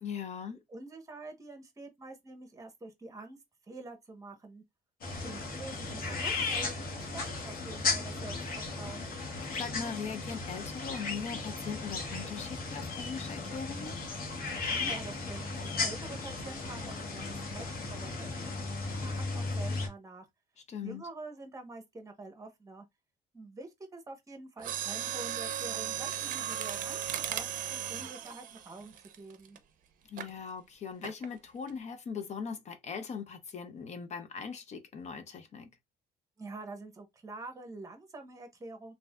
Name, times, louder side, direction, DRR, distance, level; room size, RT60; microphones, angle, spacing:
voice 1, 0.0-0.6 9.5-14.0 20.7-21.0 30.1-35.7, left 6 dB, 40° left, 0.6 m, -40 dB
voice 2, 0.7-3.4 3.6-4.6 5.2-9.1 14.7-20.3 20.8-22.9 23.3-27.0 27.3-29.6 36.4-38.9, right 2 dB, 20° right, 0.9 m, -46 dB
sound 1, 5.0-19.9, left 3 dB, 60° left, 1.3 m, -36 dB
Mechanisms, 24.6-29.6 30.2-30.4 31.0-31.4 31.7-31.8, right 10 dB, 55° right, 0.6 m, -36 dB
3.2 x 2.6 x 2.3 m
cardioid pair, 110°, 17 cm